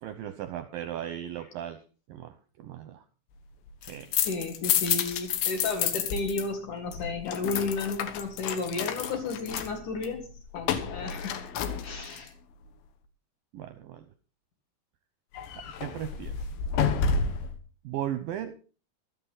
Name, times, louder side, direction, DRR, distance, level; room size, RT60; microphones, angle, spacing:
voice 1, 0.0-1.8 2.1-3.0 3.8-4.1 13.5-14.1 15.6-16.3 17.8-18.5, right 11 dB, 75° right, 9 dB, 2.1 m, -36 dB
sound 1, 3.7-6.4 6.7-12.3 15.3-17.6, left 7 dB, 85° left, 3.6 m, -30 dB
voice 2, 4.2-10.3 10.5-12.3, left 3 dB, 55° left, 4 dB, 2.7 m, -33 dB
14.5 x 13.0 x 4.0 m, 0.36 s
omnidirectional pair, 5.1 m